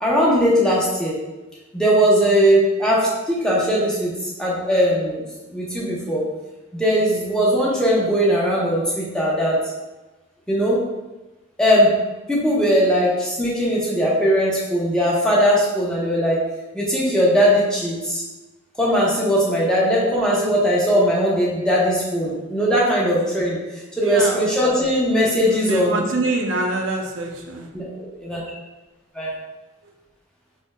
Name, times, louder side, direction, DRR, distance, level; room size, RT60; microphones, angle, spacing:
voice 1, 0.0-1.1 1.7-4.1 4.4-5.2 5.5-6.2 6.7-9.6 10.5-10.8 11.6-11.9 12.3-16.4 16.7-18.2 18.8-23.6 24.0-26.0 27.7-28.4 29.1-29.3, equal, 5° left, -6 dB, 0.8 m, -19 dB
voice 2, 24.0-24.4 25.5-27.7, right 2 dB, 75° right, 2 dB, 0.5 m, -25 dB
4.4 x 2.7 x 2.2 m, 1.1 s
head